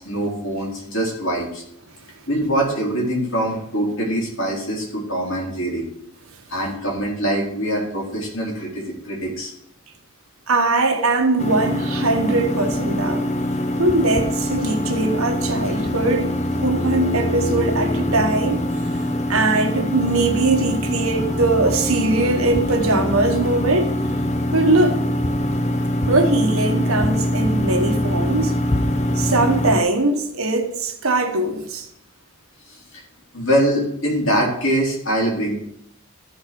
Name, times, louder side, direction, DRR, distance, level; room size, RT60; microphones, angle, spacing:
voice 1, 0.0-1.6 2.3-5.8 6.5-9.5 32.7-33.0 33.3-35.5, right 1 dB, 65° left, 3.8 m, -23 dB
voice 2, 10.5-13.3 13.8-16.4 16.6-18.6 19.3-23.9 24.5-25.0 26.1-28.5 29.2-31.9, right 2 dB, 80° right, 1.3 m, -21 dB
sound 1, 11.4-29.8, left 1 dB, 30° left, 0.6 m, -23 dB
13.0 x 4.4 x 5.9 m
head